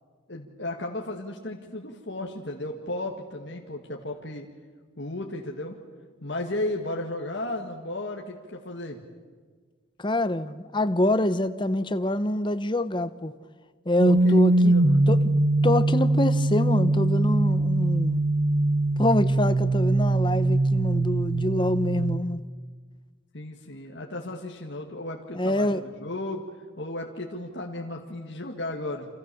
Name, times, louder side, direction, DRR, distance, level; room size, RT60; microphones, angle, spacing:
voice 1, 0.3-4.5 5.0-5.8 6.2-9.0 14.1-14.4 14.7-15.1 23.3-26.4 26.8-29.1, left 1 dB, 55° left, 2.1 m, -34 dB
voice 2, 10.0-13.3 13.8-14.7 15.1-15.3 15.6-18.2 19.0-22.4 25.3-25.8, left 1 dB, 25° left, 0.9 m, -25 dB
sound 1, 14.0-22.2, right 2 dB, 55° right, 1.2 m, -22 dB
28.5 x 27.0 x 7.1 m
head